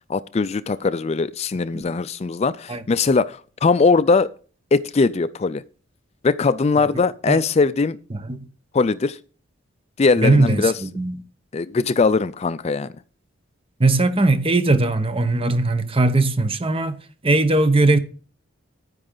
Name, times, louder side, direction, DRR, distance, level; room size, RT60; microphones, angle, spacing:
voice 1, 0.1-4.3 4.7-5.6 6.2-8.0 8.7-9.2 10.0-10.8 11.5-12.9, left 4 dB, 30° left, 0.4 m, -20 dB
voice 2, 10.2-11.2 13.8-17.0 17.2-18.0, right 2 dB, 25° right, 0.9 m, -19 dB
9.9 x 9.7 x 3.9 m
head